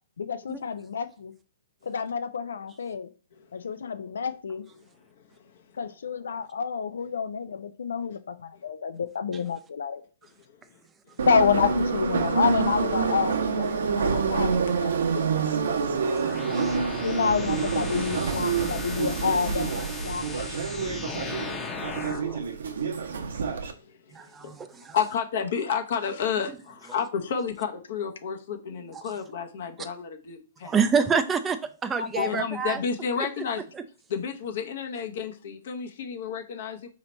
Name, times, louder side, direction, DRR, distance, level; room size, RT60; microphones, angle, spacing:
voice 1, 0.2-1.3 1.9-3.1 3.5-4.6 5.8-10.0 11.3-14.9 17.0-20.2 32.0-32.4, left 6 dB, 85° left, 0.4 m, -28 dB
Subway metro underground, 11.2-23.7, right 5 dB, 75° right, 0.8 m, -27 dB
sound 1, 16.0-22.4, left 3 dB, 15° left, 0.8 m, -37 dB
voice 2, 16.1-16.4 19.8-19.9 21.1-21.2 24.1-25.0 28.9-29.0 29.8-29.9 30.6-32.8 33.7-33.8, right 6 dB, 15° right, 0.3 m, -28 dB
voice 3, 23.8-24.1 24.4-30.7 32.2-33.6 34.1-36.9, left 7 dB, 55° left, 0.8 m, -31 dB
4.0 x 2.9 x 4.4 m
hypercardioid pair, 150°, 0 cm